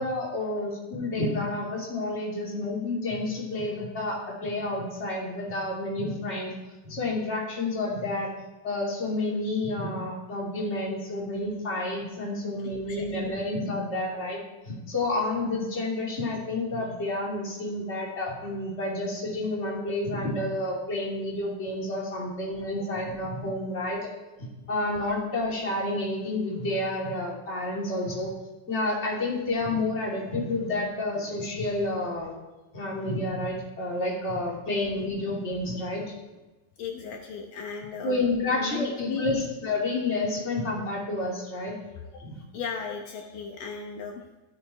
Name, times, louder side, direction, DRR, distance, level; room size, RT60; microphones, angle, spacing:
voice 1, 0.0-6.5 6.8-8.3 8.6-14.4 14.6-24.1 24.4-28.3 28.7-32.3 32.7-36.0 38.0-41.7 42.2-42.4, left 2 dB, 20° left, -4 dB, 3.0 m, -30 dB
voice 2, 12.9-13.4 14.1-14.3 36.8-38.2 38.5-39.4 42.1-42.2 42.5-44.2, left 6 dB, 70° left, 2 dB, 2.7 m, -36 dB
13.5 x 13.0 x 4.3 m, 1.1 s
omnidirectional pair, 4.1 m